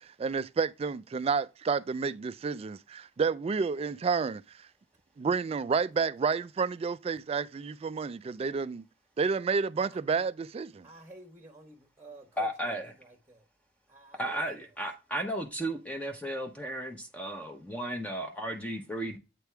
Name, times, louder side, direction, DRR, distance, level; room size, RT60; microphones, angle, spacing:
voice 1, 0.0-4.4 5.2-8.9 9.2-10.9, right 5 dB, 35° right, 0.3 m, -30 dB
voice 2, 10.8-13.4 13.9-14.7, right 2 dB, 10° right, 1.1 m, -52 dB
voice 3, 12.4-12.9 14.2-19.2, right 1 dB, 10° left, 0.7 m, -34 dB
8.2 x 3.4 x 4.5 m
head